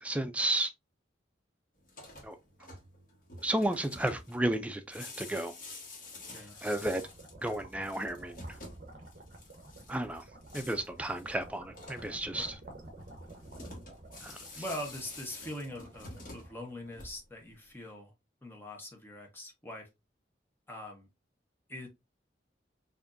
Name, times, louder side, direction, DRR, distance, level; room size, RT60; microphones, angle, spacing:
voice 1, 0.0-0.7 2.2-2.4 3.4-5.5 6.6-7.0 7.4-8.4 9.9-10.2 10.5-12.6 14.2-14.4, right 1 dB, 5° right, 0.3 m, -32 dB
sound 1, 1.8-17.5, left 2 dB, 50° left, 1.4 m, -49 dB
sound 2, 5.9-17.1, right 1 dB, 45° right, 1.0 m, -52 dB
voice 2, 14.5-18.1 18.4-19.9 20.7-21.1 21.7-21.9, left 1 dB, 10° left, 0.9 m, -42 dB
4.9 x 2.6 x 2.5 m
head